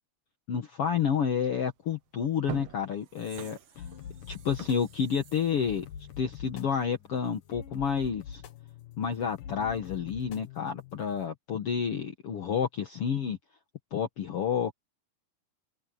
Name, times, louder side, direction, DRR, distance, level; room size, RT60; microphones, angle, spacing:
voice 1, 0.5-3.6 4.3-5.9 6.2-8.4 9.0-13.4 13.9-14.7, left 7 dB, 55° left, 2.0 m, -30 dB
sound 1, 1.7-1.8 2.3-7.0 7.4-7.5, right 11 dB, 60° right, 2.4 m, -45 dB
sound 2, 3.7-11.3, left 8 dB, 70° left, 3.0 m, -45 dB
omnidirectional pair, 3.9 m